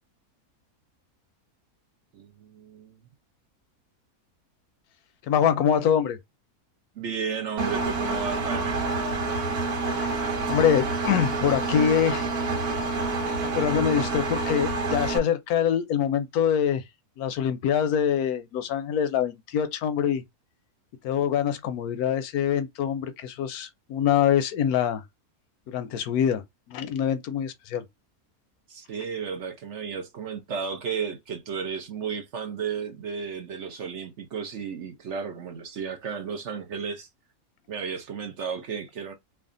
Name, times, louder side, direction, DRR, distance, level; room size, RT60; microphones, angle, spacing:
voice 1, 2.1-3.0 6.9-8.8 28.7-37.1 37.7-39.1, right 6 dB, 55° right, 1.0 m, -33 dB
voice 2, 5.3-6.2 9.9-10.2 10.5-12.3 13.5-16.8 17.2-20.2 21.0-25.0 25.7-26.4 26.7-27.8, left 8 dB, 80° left, 1.1 m, -24 dB
Engine, 7.6-15.2, right 3 dB, 75° right, 1.6 m, -28 dB
3.3 x 2.4 x 3.7 m
omnidirectional pair, 1.6 m